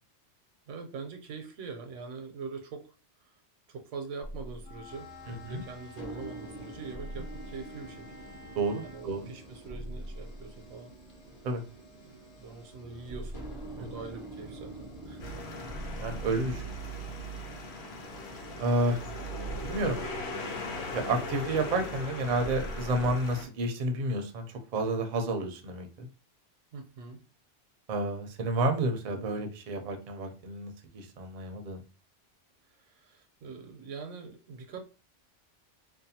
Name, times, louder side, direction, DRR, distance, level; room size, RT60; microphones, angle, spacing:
voice 1, 0.7-2.9 3.2-3.3 3.7-8.1 8.8-10.9 12.0-13.5 13.7-15.4 15.8-16.0 18.9-19.2 26.7-27.2 32.8-34.8, right 5 dB, 90° right, 5 dB, 1.0 m, -43 dB
sound 1, 4.2-23.1, right 1 dB, 30° left, 0.7 m, -45 dB
Wind instrument woodwind instrument, 4.6-9.1, left 2 dB, 85° left, 1.1 m, -51 dB
voice 2, 5.3-5.6 8.6-9.3 11.4-11.6 13.8-13.9 16.0-16.7 18.6-19.0 19.6-20.0 20.9-26.1 27.9-31.8, right 2 dB, 55° right, 4 dB, 0.5 m, -30 dB
sound 2, 15.2-23.5, left 1 dB, 65° left, 0.8 m, -39 dB
2.6 x 2.2 x 2.7 m, 0.32 s
omnidirectional pair, 1.2 m